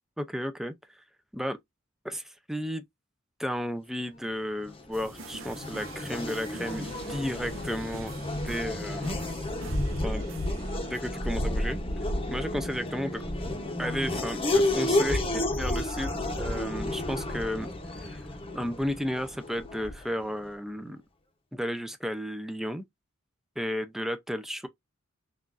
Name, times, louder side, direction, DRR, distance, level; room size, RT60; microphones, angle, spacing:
voice 1, 0.2-0.7 1.3-1.6 2.0-2.8 3.4-9.1 10.0-10.2 10.9-11.8 12.3-13.2 13.8-17.7 18.0-18.2 18.5-21.0 21.5-22.8 23.6-24.7, equal, ahead, 0.5 m, -33 dB
Race car auto racing / Accelerating revving vroom, 4.6-20.2, left 1 dB, 25° left, 0.8 m, -31 dB
sound 1, 4.9-11.0, right 4 dB, 70° right, 0.8 m, -45 dB
sound 2, 6.7-20.1, left 3 dB, 55° left, 0.7 m, -48 dB
6.0 x 2.5 x 2.5 m
head